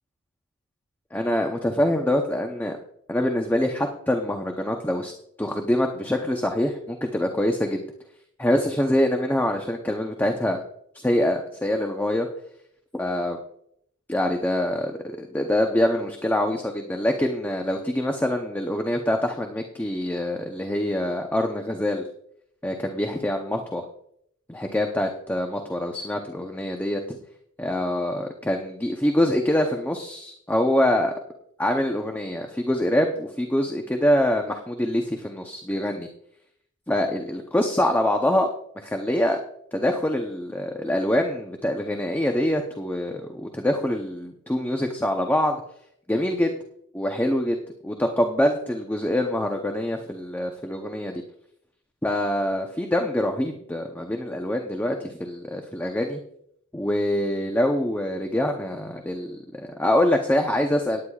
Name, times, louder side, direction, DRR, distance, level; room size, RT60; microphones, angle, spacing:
voice 1, 1.1-2.8 3.1-5.1 5.4-7.8 8.4-10.6 10.9-12.3 12.9-13.4 14.1-22.0 22.6-23.8 24.5-27.0 27.6-31.1 31.6-36.1 36.9-38.5 38.8-39.4 39.7-45.6 46.1-46.6 46.9-47.6 47.8-51.2 52.0-56.2 56.7-61.0, left 1 dB, 10° left, 3 dB, 0.8 m, -25 dB
18.0 x 9.6 x 2.4 m, 0.70 s
head